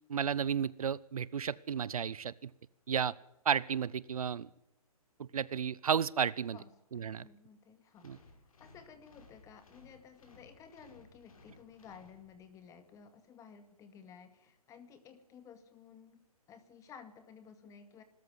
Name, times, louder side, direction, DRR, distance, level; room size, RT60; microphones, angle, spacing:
voice 1, 0.1-2.5 2.9-3.1 3.5-4.5 5.2-6.6 6.9-7.3 8.0-8.2, right 7 dB, 70° right, 21 dB, 0.7 m, -33 dB
voice 2, 6.5-18.0, left 6 dB, 15° left, 9 dB, 2.1 m, -55 dB
sound 1, 8.0-12.7, left 3 dB, 65° left, 5.1 m, -60 dB
21.0 x 13.5 x 9.6 m, 0.89 s
hypercardioid pair, 140°, 19 cm